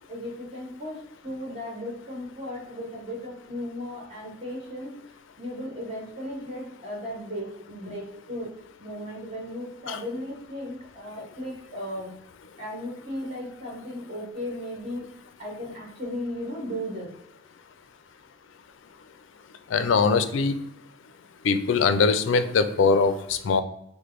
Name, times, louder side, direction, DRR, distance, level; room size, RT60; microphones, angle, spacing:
voice 1, 0.1-8.5 8.8-12.1 12.6-15.1 15.4-17.1, left 1 dB, 30° right, -2 dB, 1.6 m, -36 dB
voice 2, 19.7-20.6 21.4-23.6, left 4 dB, 75° left, 10 dB, 0.4 m, -22 dB
5.0 x 2.1 x 4.4 m, 0.77 s
head